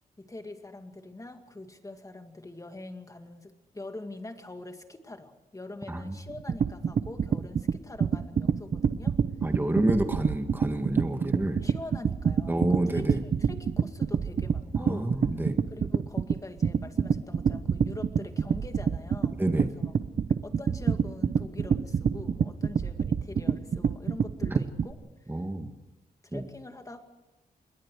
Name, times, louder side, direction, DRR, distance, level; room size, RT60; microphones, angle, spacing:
voice 1, 0.2-9.2 9.7-9.8 11.6-15.2 15.7-19.9 20.4-25.0 25.2-25.5 26.2-27.0, left 2 dB, 20° left, 6 dB, 2.3 m, -44 dB
sound 1, 6.3-24.9, right 6 dB, 50° right, 0.8 m, -27 dB
voice 2, 9.4-11.6 12.5-13.2 14.8-15.6 19.4-19.7 24.5-24.6 25.3-25.7 26.3-26.4, right 1 dB, 10° right, 6 dB, 1.9 m, -28 dB
28.0 x 22.0 x 4.8 m, 1.0 s
cardioid pair, 100°, 16 cm